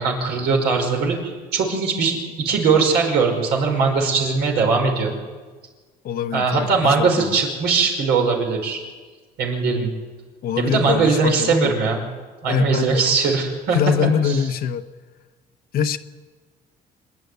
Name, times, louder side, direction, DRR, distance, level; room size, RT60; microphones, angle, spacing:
voice 1, 0.0-5.1 6.3-8.8 9.4-9.9 10.6-12.0 12.4-13.8 14.2-14.4, right 4 dB, 80° right, 5.5 m, -20 dB
voice 2, 6.0-7.4 10.4-11.7 12.5-13.0 13.7-14.8 15.7-16.0, left 7 dB, 60° left, 1.0 m, -23 dB
26.0 x 11.0 x 9.5 m
cardioid pair, 110°, 17 cm